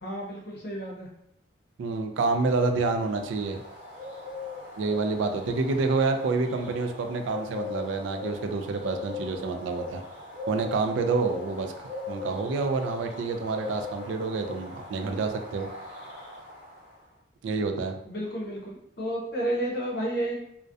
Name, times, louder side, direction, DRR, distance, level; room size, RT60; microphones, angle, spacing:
voice 1, 0.0-1.1 18.0-20.3, right 1 dB, 55° left, -3 dB, 0.6 m, -31 dB
voice 2, 1.8-3.6 4.8-10.0 10.5-11.7 12.1-15.7 17.4-17.9, right 4 dB, 80° right, 6 dB, 0.3 m, -28 dB
sound 1, 2.4-16.9, left 3 dB, 45° right, 1.0 m, -40 dB
2.3 x 2.1 x 2.5 m, 0.74 s
head